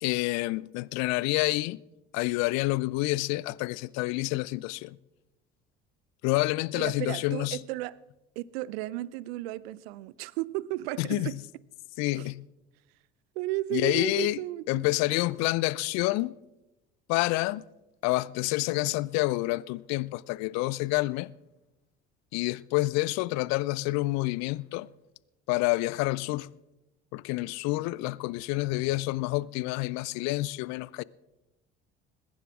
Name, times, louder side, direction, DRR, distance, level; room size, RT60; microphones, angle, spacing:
voice 1, 0.0-1.8 2.1-5.0 6.2-7.6 11.0-11.4 12.0-12.4 13.7-14.4 14.7-16.4 17.1-17.7 18.0-21.3 22.3-24.9 25.5-26.5 27.1-31.0, left 20 dB, 55° left, 0.5 m, -28 dB
voice 2, 6.7-8.0 8.4-11.4 12.1-12.3 13.4-14.8, right 17 dB, 70° right, 0.5 m, -34 dB
21.5 x 10.5 x 3.6 m
hypercardioid pair, 60°, 32 cm